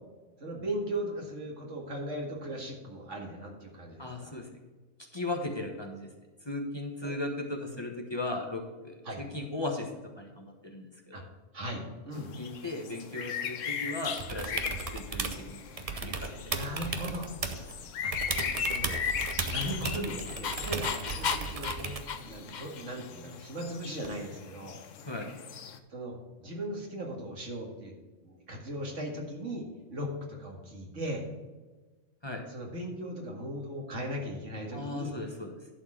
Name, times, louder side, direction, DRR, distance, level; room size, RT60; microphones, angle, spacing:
voice 1, 0.4-4.4 7.0-7.2 9.0-9.2 11.1-11.2 11.5-12.3 16.4-17.3 18.0-18.1 18.7-19.0 19.4-24.8 25.9-27.9 28.2-31.3 32.5-35.1, equal, 80° right, 0 dB, 2.3 m, -38 dB
voice 2, 4.0-4.5 5.1-6.1 6.4-9.9 10.2-11.2 12.4-14.6 14.9-15.6 16.0-16.6 25.1-25.3 32.2-32.4 34.7-35.6, left 2 dB, 20° left, 2 dB, 1.2 m, -37 dB
sound 1, 12.1-25.8, left 7 dB, 90° left, 1.2 m, -38 dB
sound 2, 14.2-15.4 15.8-17.8 18.1-22.2 24.0-24.1, right 4 dB, 35° right, 0.8 m, -36 dB
Dog, 19.2-23.0, left 6 dB, 50° left, 0.6 m, -36 dB
11.5 x 4.5 x 7.4 m, 1.2 s
omnidirectional pair, 1.3 m